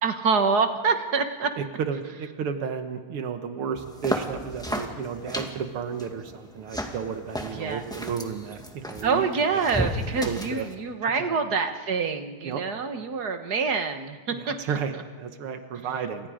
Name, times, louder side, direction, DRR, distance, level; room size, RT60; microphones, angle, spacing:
voice 1, 0.0-1.5 7.6-7.8 9.0-14.5, right 5 dB, 50° right, 7 dB, 1.8 m, -26 dB
voice 2, 1.6-9.9 10.2-10.7 11.2-11.4 12.4-12.6 14.3-16.3, right 7 dB, 85° right, 7 dB, 2.2 m, -33 dB
sound 1, 3.8-10.7, equal, ahead, 1.7 m, -34 dB
29.0 x 27.0 x 5.1 m, 1.4 s
omnidirectional pair, 2.4 m